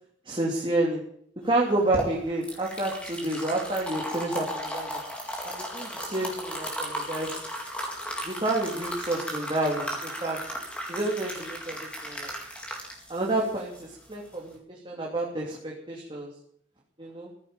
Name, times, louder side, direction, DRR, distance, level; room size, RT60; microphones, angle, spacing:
voice 1, 0.2-1.0 1.4-5.0 5.4-7.4 8.2-10.4 10.9-12.3 13.1-16.3 17.0-17.3, right 2 dB, 25° right, -3 dB, 2.9 m, -29 dB
sound 1, 1.6-14.5, equal, 5° left, 3.9 m, -36 dB
15.5 x 9.2 x 9.0 m, 0.66 s
head